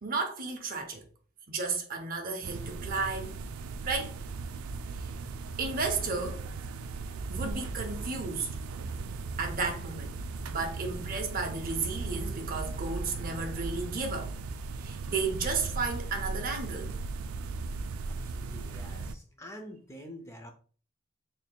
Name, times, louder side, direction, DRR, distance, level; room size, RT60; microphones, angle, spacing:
voice 1, 0.0-1.0 1.5-3.4 3.8-4.2 4.9-5.1 5.6-6.4 7.3-8.5 9.4-10.1 10.5-14.3 14.8-16.9, right 4 dB, 45° right, 0.7 m, -33 dB
sound 1, 2.4-19.1, right 3 dB, 90° right, 0.3 m, -37 dB
voice 2, 18.1-20.5, equal, 15° left, 0.4 m, -47 dB
4.5 x 3.2 x 2.2 m
head